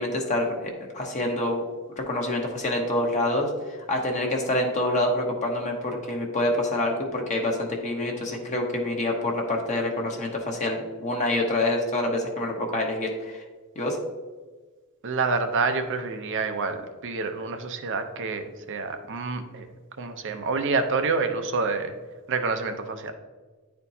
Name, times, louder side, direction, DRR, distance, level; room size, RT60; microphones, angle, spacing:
voice 1, 0.0-1.6 2.0-3.5 3.9-13.4 13.8-14.0, left 1 dB, 35° left, 0 dB, 1.0 m, -26 dB
voice 2, 15.0-19.7 20.0-21.9 22.3-23.1, right 4 dB, 60° right, 7 dB, 0.6 m, -27 dB
9.9 x 4.4 x 2.7 m, 1.3 s
head